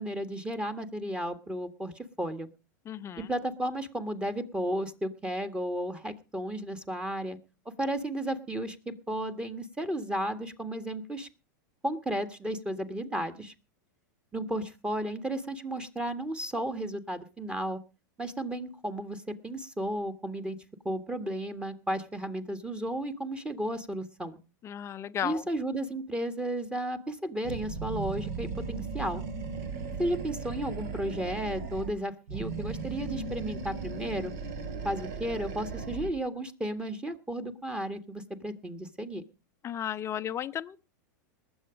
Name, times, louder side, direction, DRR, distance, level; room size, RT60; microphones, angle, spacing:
voice 1, 0.0-2.5 3.2-7.4 7.8-11.3 11.8-13.5 14.3-17.8 18.2-20.6 20.8-24.4 25.2-29.2 30.0-34.3 34.8-39.2, right 1 dB, 10° right, 1.8 m, -33 dB
voice 2, 2.9-3.3 24.6-25.4 39.6-40.9, left 10 dB, 25° left, 0.7 m, -34 dB
Animal, 27.4-32.0 32.3-36.2, right 4 dB, 60° right, 3.2 m, -37 dB
20.0 x 8.0 x 5.1 m
hypercardioid pair, 125°, 10 cm